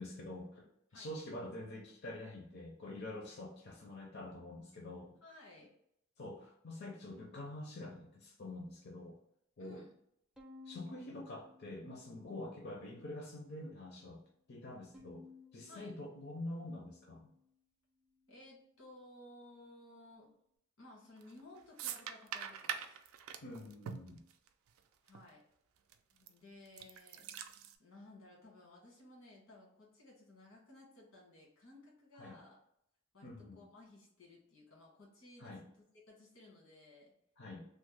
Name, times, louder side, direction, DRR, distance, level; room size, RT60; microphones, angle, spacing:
voice 1, 0.0-5.2 6.2-9.2 9.6-9.8 10.6-14.2 14.5-15.2 15.5-17.3 23.4-24.2 32.2-32.4 33.2-33.6 35.4-35.6 37.4-37.7, left 1 dB, 55° left, -1 dB, 0.5 m, -46 dB
voice 2, 5.2-5.7 9.6-9.9 15.7-15.9 18.3-20.3 20.8-22.9 25.0-25.4 26.1-27.3 27.8-32.6 33.1-37.1, left 2 dB, 90° left, -3 dB, 1.4 m, -57 dB
Bowed string instrument, 10.4-12.7 13.2-14.0 14.9-17.5, left 4 dB, 5° right, 0.4 m, -59 dB
sound 1, 21.2-21.4 21.8-24.8 25.1-25.2 25.9-26.3 26.7-27.7, right 8 dB, 90° right, 0.3 m, -43 dB
3.1 x 2.0 x 3.2 m, 0.74 s
head